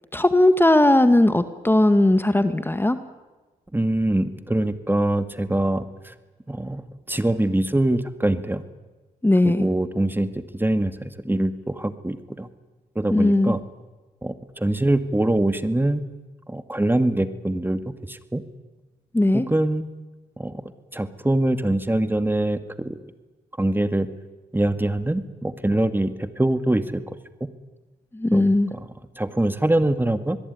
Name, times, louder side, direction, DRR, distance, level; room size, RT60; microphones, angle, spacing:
voice 1, 0.1-3.0 9.2-9.7 13.1-13.5 19.1-19.5 28.1-28.7, left 1 dB, 10° left, 10 dB, 1.9 m, -18 dB
voice 2, 3.7-6.1 6.5-6.8 7.1-8.6 9.4-12.5 13.0-13.6 14.2-16.2 16.5-18.4 19.3-19.9 20.4-23.0 23.6-24.1 24.5-27.0 28.3-28.9 29.2-30.4, right 1 dB, 10° right, 10 dB, 2.2 m, -24 dB
25.0 x 21.5 x 9.7 m, 1.2 s
supercardioid pair, 55°, 17 cm